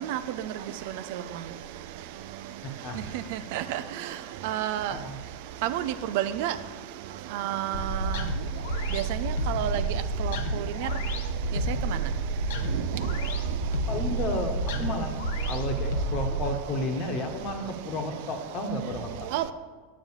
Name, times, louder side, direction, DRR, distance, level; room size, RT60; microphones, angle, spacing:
voice 1, 2.6-3.3 4.9-5.2 13.9-15.1 15.5-19.3, left 1 dB, 45° left, 5 dB, 1.4 m, -32 dB
voice 2, 4.4-4.9 5.7-5.8 6.1-6.5 7.4-7.7 8.9-9.0 9.5-9.8 19.3-19.5, right 12 dB, 65° right, 12 dB, 0.5 m, -28 dB
sound 1, 7.7-16.5, right 2 dB, 75° left, 0.9 m, -30 dB
7.4 x 5.0 x 7.2 m, 1.5 s
hypercardioid pair, 105°, 0 cm